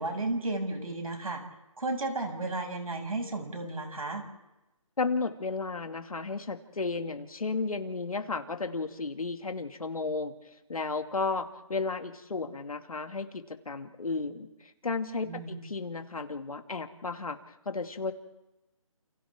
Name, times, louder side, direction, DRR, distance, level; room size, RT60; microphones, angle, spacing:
voice 1, 0.0-1.4 1.8-4.2 15.2-15.6, right 2 dB, 85° right, 3 dB, 6.8 m, -33 dB
voice 2, 5.0-10.3 10.7-17.4 17.7-18.1, left 4 dB, 85° left, 7 dB, 2.4 m, -33 dB
29.5 x 28.5 x 3.7 m, 0.98 s
hypercardioid pair, 170°, 18 cm